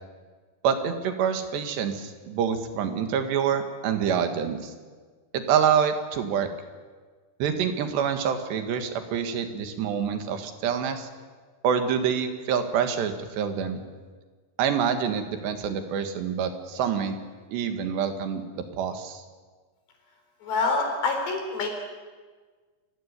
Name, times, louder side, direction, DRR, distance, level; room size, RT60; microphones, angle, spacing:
voice 1, 0.6-4.7 5.3-6.5 7.4-11.1 11.6-13.8 14.6-17.2 17.5-19.2, right 7 dB, 90° right, 7 dB, 4.0 m, -26 dB
voice 2, 20.4-21.7, left 3 dB, 90° left, 3 dB, 6.4 m, -26 dB
27.0 x 15.5 x 9.7 m, 1.4 s
omnidirectional pair, 4.8 m